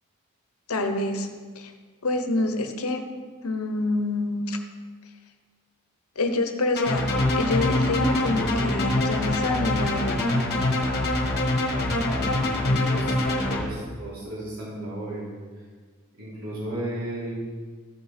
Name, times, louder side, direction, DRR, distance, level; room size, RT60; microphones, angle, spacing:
voice 1, 0.7-1.3 1.5-1.7 2.0-3.0 3.4-4.6 6.2-7.0 7.4-10.3, left 2 dB, 75° left, 6 dB, 1.0 m, -27 dB
sound 1, 6.8-13.6, left 1 dB, 45° left, 1.3 m, -24 dB
voice 2, 12.0-15.2 15.5-15.6 16.2-17.3, right 1 dB, 75° right, -7 dB, 3.2 m, -35 dB
14.0 x 5.9 x 4.3 m, 1.5 s
head